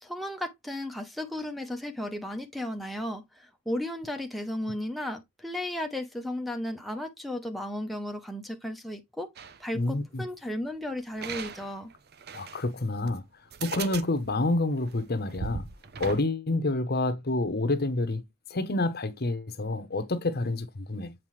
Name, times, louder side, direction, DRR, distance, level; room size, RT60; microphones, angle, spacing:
voice 1, 0.0-9.3 9.6-11.9, left 1 dB, ahead, 0.8 m, -34 dB
sound 1, 9.4-9.6 11.2-12.6 13.1-13.2 13.5-16.2, right 5 dB, 50° right, 0.7 m, -38 dB
voice 2, 9.7-10.2 12.3-13.2 13.6-15.7 16.0-18.2 18.5-21.1, left 2 dB, 50° left, 0.9 m, -28 dB
7.5 x 4.8 x 3.2 m
head